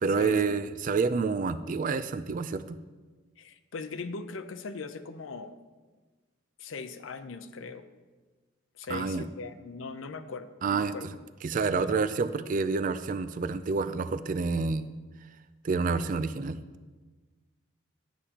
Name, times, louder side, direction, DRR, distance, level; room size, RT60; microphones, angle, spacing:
voice 1, 0.0-2.8 8.9-9.3 10.6-10.9 11.4-14.9 15.6-16.6, right 4 dB, 40° right, 13 dB, 0.3 m, -28 dB
voice 2, 3.4-5.6 6.6-7.9 8.7-11.1 11.7-12.0, left 4 dB, 80° left, 10 dB, 0.6 m, -40 dB
12.0 x 8.2 x 2.9 m, 1.3 s
head